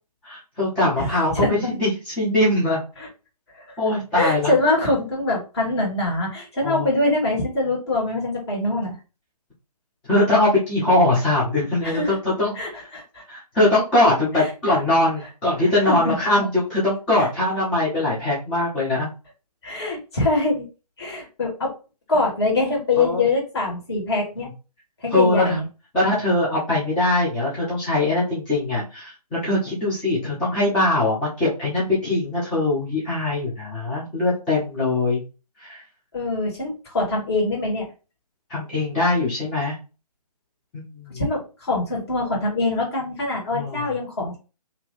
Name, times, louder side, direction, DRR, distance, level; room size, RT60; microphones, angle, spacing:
voice 1, 0.2-1.9 2.2-2.8 3.8-4.5 6.6-6.9 10.1-12.5 13.3-19.1 23.0-23.2 25.1-25.6 25.9-35.2 35.6-35.8 38.5-39.7 40.7-41.2 43.5-43.8, left 2 dB, 5° left, -10 dB, 0.4 m, -21 dB
voice 2, 1.0-1.6 3.0-3.1 3.6-3.8 4.1-9.0 11.8-12.2 12.6-13.2 14.3-14.8 15.6-16.2 17.1-17.3 19.6-20.7 21.0-21.8 22.1-24.5 25.0-25.7 36.1-37.9 41.1-44.4, left 2 dB, 40° left, -2 dB, 1.7 m, -24 dB
2.8 x 2.5 x 3.8 m, 0.32 s
figure-of-eight pair, 140°, 20 cm